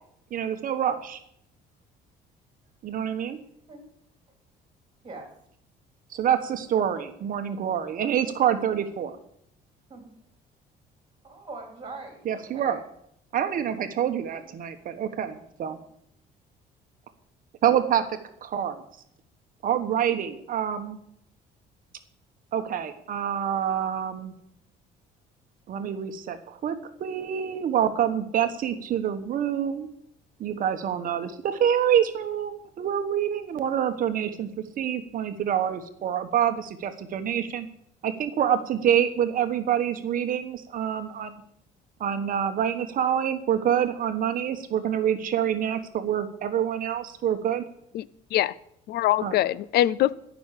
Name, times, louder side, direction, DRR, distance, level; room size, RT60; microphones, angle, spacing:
voice 1, 0.3-1.2 2.8-3.4 6.1-9.2 12.3-12.8 13.3-15.8 17.6-18.8 19.6-21.0 22.5-24.3 25.7-29.9 30.4-34.5 34.8-37.7 38.0-41.4 42.0-47.6 49.2-49.4, right 9 dB, 55° right, 8 dB, 1.1 m, -26 dB
voice 2, 11.2-12.8 15.7-15.8, right 3 dB, 25° right, 3 dB, 3.8 m, -42 dB
voice 3, 47.9-48.5 48.9-50.1, left 13 dB, 70° left, 20 dB, 0.6 m, -23 dB
14.5 x 6.2 x 8.3 m, 0.72 s
cardioid pair, 110°, 17 cm